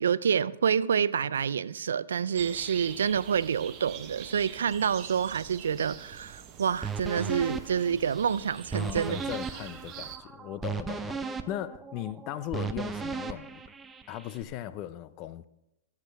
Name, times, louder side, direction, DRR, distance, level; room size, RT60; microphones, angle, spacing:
voice 1, 0.0-9.2, right 7 dB, 85° right, 0.4 m, -28 dB
sound 1, 2.4-10.2, right 9 dB, 35° right, 1.0 m, -45 dB
sound 2, 6.8-14.4, right 5 dB, 15° right, 0.6 m, -37 dB
voice 2, 8.7-13.6 14.1-15.4, left 12 dB, 40° left, 0.5 m, -38 dB
17.0 x 8.1 x 3.4 m
hypercardioid pair, 125°, 0 cm